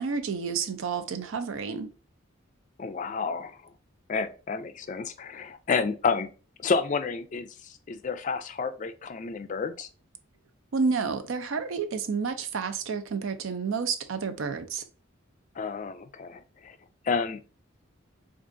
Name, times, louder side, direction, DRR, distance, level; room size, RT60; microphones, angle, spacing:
voice 1, 0.0-1.9 10.7-14.8, right 5 dB, 75° right, 0.5 m, -30 dB
voice 2, 2.8-3.6 4.1-6.3 6.6-7.5 7.9-9.9 15.6-16.8 17.1-17.4, left 5 dB, 35° left, 0.3 m, -30 dB
4.5 x 2.4 x 2.5 m
head